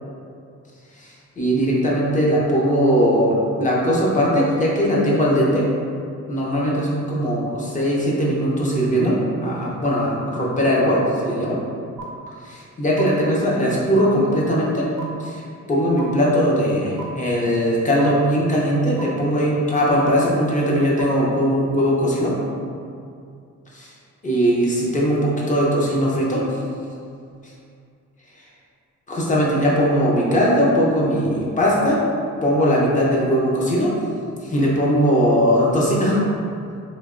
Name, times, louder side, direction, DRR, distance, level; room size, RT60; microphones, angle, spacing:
voice 1, 1.4-5.6 6.3-11.6 12.4-14.8 15.2-15.4 15.7-22.3 24.2-26.6 29.1-32.0 32.4-33.9 34.4-36.2, equal, 25° left, -5 dB, 0.6 m, -19 dB
sound 1, 12.0-12.1 13.0-13.1 14.0-14.1 15.0-15.1 16.0-16.1 17.0-17.1 18.0-18.1 19.0-19.1 20.0-20.1 21.0-21.1, right 5 dB, 85° right, 0.6 m, -33 dB
3.1 x 2.9 x 2.4 m, 2.4 s
cardioid pair, 120°, 30 cm